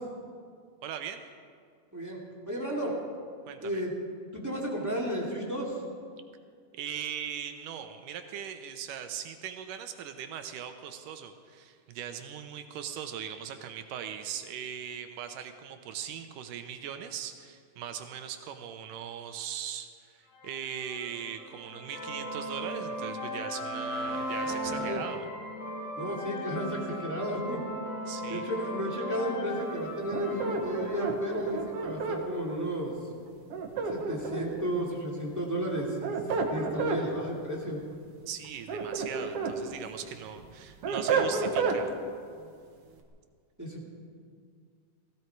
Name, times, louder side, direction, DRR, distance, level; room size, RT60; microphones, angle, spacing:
voice 1, 0.8-1.2 3.5-3.8 6.7-25.3 28.1-28.4 38.3-42.0, right 9 dB, 75° right, 7 dB, 2.3 m, -39 dB
voice 2, 2.5-3.0 3.6-3.9 4.3-5.8 24.4-25.0 26.0-27.6 28.3-32.9 33.9-36.2 36.5-37.8 43.6-43.9, equal, 5° right, -2 dB, 1.6 m, -33 dB
sound 1, 20.3-32.1, equal, 70° left, 5.0 m, -37 dB
sound 2, 30.1-32.2 33.5-34.6 35.8-37.0 38.4-39.6 40.0-41.8, right 4 dB, 60° right, 1.7 m, -30 dB
17.0 x 16.0 x 4.6 m, 2.1 s
omnidirectional pair, 4.0 m